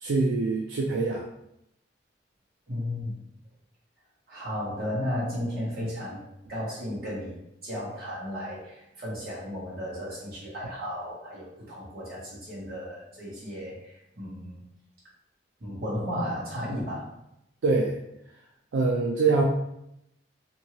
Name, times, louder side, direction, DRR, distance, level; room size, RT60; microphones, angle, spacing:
voice 1, 0.0-1.3 17.6-18.0 18.7-19.4, right 3 dB, 75° right, -2 dB, 0.4 m, -24 dB
voice 2, 2.7-3.2 4.3-6.2 6.5-14.6 15.6-17.1, equal, 55° right, -7 dB, 1.3 m, -34 dB
2.7 x 2.6 x 3.0 m, 0.82 s
head